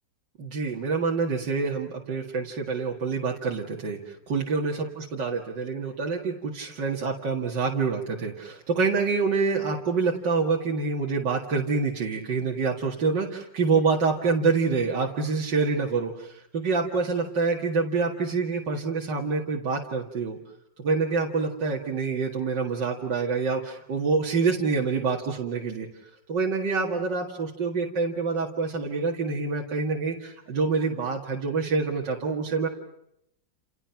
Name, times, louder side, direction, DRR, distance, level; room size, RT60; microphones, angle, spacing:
voice 1, 0.4-20.4 20.8-25.9 26.3-32.7, right 4 dB, 80° right, -1 dB, 2.7 m, -26 dB
30.0 x 29.0 x 5.9 m, 0.79 s
omnidirectional pair, 1.9 m